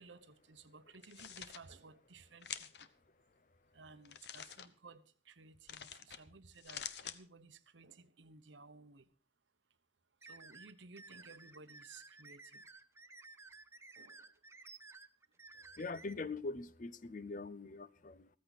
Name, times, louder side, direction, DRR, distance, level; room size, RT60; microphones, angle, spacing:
voice 1, 0.0-2.9 3.7-9.1 10.2-12.7 14.0-14.4 15.5-15.6, right 4 dB, 85° right, 1.0 m, -57 dB
sound 1, 0.9-1.6 2.4-2.9 4.0-4.7 5.7-6.2 6.5-7.2, left 9 dB, 65° left, 1.0 m, -46 dB
sound 2, 10.2-16.1, right 3 dB, 15° right, 0.7 m, -55 dB
voice 2, 15.8-18.3, left 3 dB, 45° left, 0.6 m, -43 dB
15.0 x 14.0 x 4.1 m
head